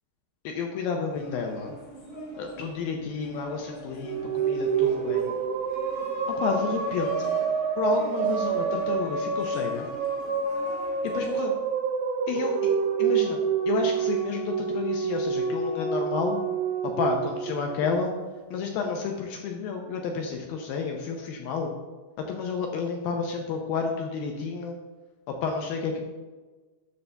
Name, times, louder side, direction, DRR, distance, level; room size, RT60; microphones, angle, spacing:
voice 1, 0.4-1.7 2.4-5.4 6.3-7.4 7.8-9.9 11.0-11.5 12.3-12.6 13.0-13.4 13.7-16.4 16.8-18.1 18.5-21.7 22.2-24.8 25.3-26.0, left 5 dB, 85° left, 2 dB, 2.1 m, -30 dB
sound 1, 1.1-11.4, right 1 dB, 55° left, 0.9 m, -45 dB
sound 2, 3.9-18.4, right 6 dB, 85° right, 2.0 m, -28 dB
9.5 x 3.4 x 6.7 m, 1.3 s
omnidirectional pair, 4.9 m